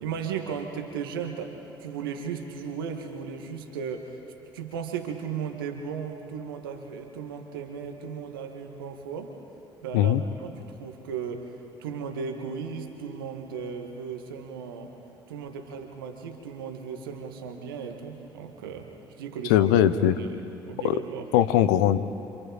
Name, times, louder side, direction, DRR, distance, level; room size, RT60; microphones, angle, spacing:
voice 1, 0.0-4.2 4.5-9.3 9.8-11.5 11.8-14.9 15.3-19.7 20.2-21.3, right 6 dB, 75° right, 4 dB, 1.7 m, -36 dB
voice 2, 19.4-20.2 20.8-21.0 21.3-22.0, left 11 dB, 70° left, 12 dB, 0.8 m, -20 dB
27.5 x 26.0 x 4.0 m, 2.9 s
figure-of-eight pair, 50°, 12 cm